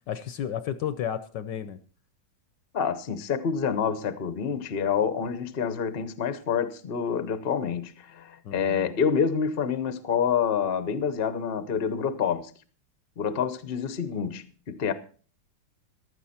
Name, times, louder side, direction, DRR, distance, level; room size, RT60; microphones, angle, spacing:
voice 1, 0.1-1.8 8.4-8.9, left 9 dB, 65° left, 1.2 m, -32 dB
voice 2, 2.7-12.5 13.2-14.9, left 7 dB, 45° left, 0.8 m, -27 dB
15.0 x 12.0 x 4.3 m
omnidirectional pair, 2.3 m